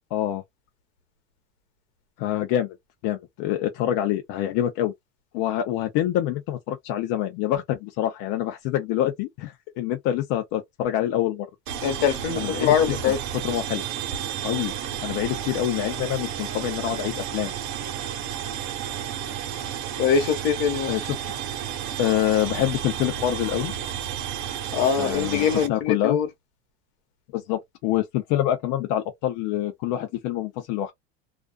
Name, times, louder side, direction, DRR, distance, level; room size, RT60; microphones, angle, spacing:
voice 1, 0.1-0.4 2.2-2.8 3.0-4.9 5.3-11.5 12.4-13.1 13.4-13.8 14.4-14.7 15.0-17.5 20.9-21.3 22.0-23.7 25.0-26.2 27.3-30.9, left 12 dB, 65° left, 0.6 m, -26 dB
sound 1, 11.7-25.7, right 9 dB, 70° right, 0.8 m, -32 dB
voice 2, 11.8-13.2 20.0-20.9 24.7-26.3, left 7 dB, 80° left, 1.1 m, -23 dB
2.4 x 2.3 x 2.2 m
supercardioid pair, 130°, 33 cm